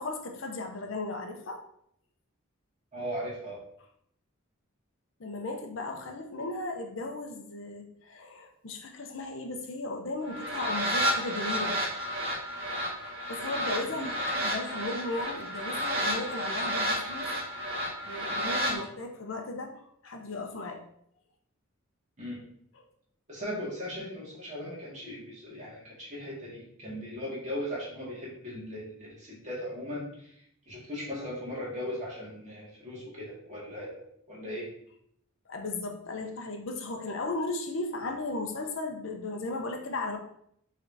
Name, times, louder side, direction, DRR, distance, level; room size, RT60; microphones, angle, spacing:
voice 1, 0.0-1.6 5.2-11.8 13.3-17.3 18.0-20.8 35.5-40.2, left 2 dB, 65° left, 3 dB, 0.7 m, -36 dB
voice 2, 2.9-3.6 13.8-14.1 18.6-18.8 22.2-22.4 23.3-30.3 30.7-34.7, equal, 35° right, -6 dB, 2.0 m, -38 dB
sound 1, 10.3-18.7, equal, 60° right, 1.8 m, -31 dB
5.8 x 3.4 x 2.7 m, 0.69 s
head